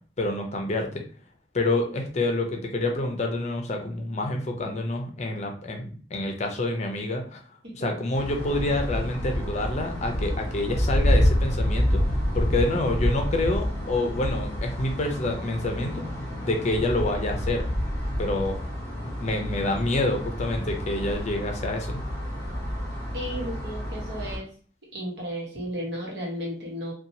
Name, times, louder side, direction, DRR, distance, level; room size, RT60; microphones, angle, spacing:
voice 1, 0.2-1.0 1.5-7.4 7.7-12.0 12.3-16.0 16.4-17.7 18.2-18.6 19.2-22.0, left 2 dB, 40° left, 3 dB, 0.5 m, -27 dB
sound 1, 8.1-24.4, equal, 15° left, 1.3 m, -28 dB
voice 2, 23.1-24.5 24.9-26.9, equal, 70° right, -2 dB, 1.1 m, -34 dB
2.7 x 2.3 x 2.6 m, 0.42 s
head